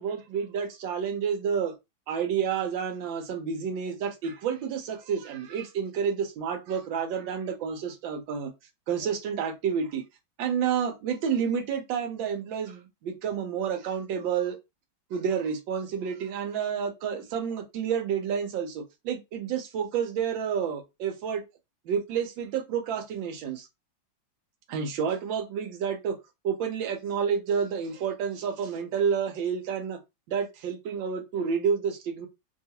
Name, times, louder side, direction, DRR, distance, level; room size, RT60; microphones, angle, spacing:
voice 1, 0.0-1.7 2.1-8.5 8.9-10.0 10.4-14.6 15.1-21.4 21.9-23.7 24.7-26.2 26.4-30.0 30.3-32.3, right 7 dB, 80° right, 1.5 m, -29 dB
3.4 x 2.3 x 2.8 m
omnidirectional pair, 2.1 m